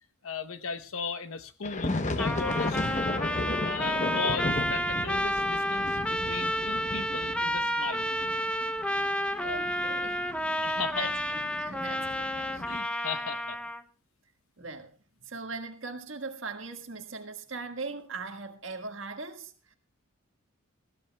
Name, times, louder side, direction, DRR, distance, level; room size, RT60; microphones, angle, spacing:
voice 1, 0.2-3.1 3.6-8.1 10.6-11.1 12.6-13.6, left 5 dB, 80° left, 11 dB, 0.9 m, -37 dB
sound 1, 1.6-12.8, left 2 dB, 35° left, 0.9 m, -35 dB
Trumpet, 2.2-13.8, equal, 5° left, 0.6 m, -30 dB
voice 2, 9.4-10.2 10.6-11.2 11.6-12.8 14.6-14.9 15.2-19.8, right 3 dB, 65° right, 5 dB, 1.6 m, -40 dB
20.0 x 15.5 x 2.3 m, 0.35 s
head